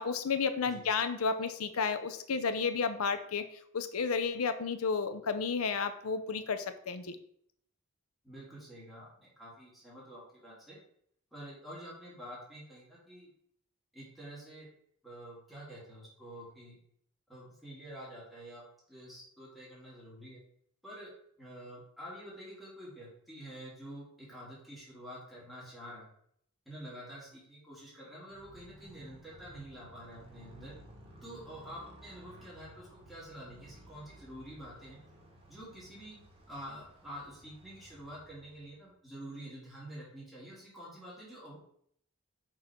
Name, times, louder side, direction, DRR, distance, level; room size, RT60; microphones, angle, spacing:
voice 1, 0.0-7.2, left 5 dB, 85° left, 10 dB, 0.6 m, -32 dB
voice 2, 8.2-10.8 11.3-13.3 13.9-14.7 15.0-16.8 17.3-18.6 18.9-20.4 20.8-21.1 21.4-26.1 26.7-30.7 31.2-35.0 35.5-36.2 36.5-41.6, equal, ahead, -7 dB, 2.3 m, -48 dB
Motorcycle, 28.2-38.9, right 1 dB, 25° right, 1.3 m, -56 dB
6.2 x 3.8 x 4.4 m, 0.67 s
head